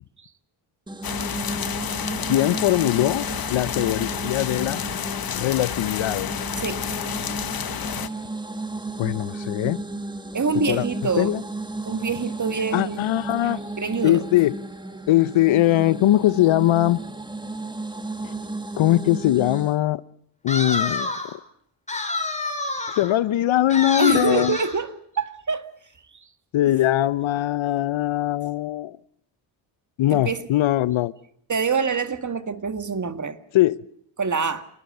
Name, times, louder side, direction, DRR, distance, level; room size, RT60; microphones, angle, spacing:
sound 1, 0.9-19.8, right 2 dB, 10° right, 1.6 m, -34 dB
sound 2, 1.0-8.1, left 8 dB, 45° left, 1.4 m, -30 dB
voice 1, 2.3-4.8 5.4-6.3 9.0-9.8 10.7-10.9 11.2-11.4 12.7-13.6 14.0-14.5 15.1-17.0 18.2-18.3 18.8-20.0 20.4-21.4 22.9-24.6 26.5-29.0 30.0-31.1 33.5-33.8, left 14 dB, 75° left, 0.9 m, -21 dB
voice 2, 10.3-11.3 11.8-13.0 13.4-14.2 24.0-25.7 30.1-30.5 31.5-33.4 34.2-34.6, right 5 dB, 35° right, 2.1 m, -26 dB
sound 3, 20.5-21.4 21.9-23.1 23.7-24.8, left 3 dB, 15° left, 4.8 m, -28 dB
27.0 x 19.5 x 6.8 m
cardioid pair, 65°, 48 cm